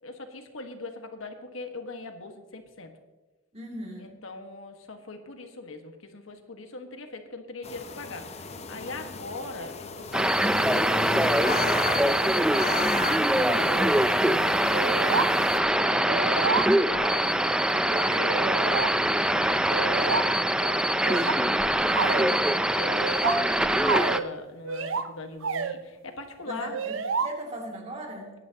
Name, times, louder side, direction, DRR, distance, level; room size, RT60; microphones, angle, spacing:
voice 1, 0.0-2.9 4.0-26.8, left 2 dB, 80° left, 5 dB, 1.6 m, -41 dB
voice 2, 3.5-4.2 26.5-28.3, right 1 dB, 30° right, 0 dB, 2.6 m, -38 dB
sound 1, 7.6-15.6, left 3 dB, 30° left, 0.8 m, -36 dB
sound 2, 10.1-24.2, right 1 dB, 5° right, 0.4 m, -23 dB
sound 3, 14.7-15.3 15.6-15.7 16.1-17.1 17.9-18.9 19.7-20.3 21.0-22.3 23.0-24.3 24.6-25.1 25.4-25.8 26.7-27.3, right 5 dB, 70° right, 0.6 m, -29 dB
23.0 x 10.5 x 2.9 m, 1.2 s
head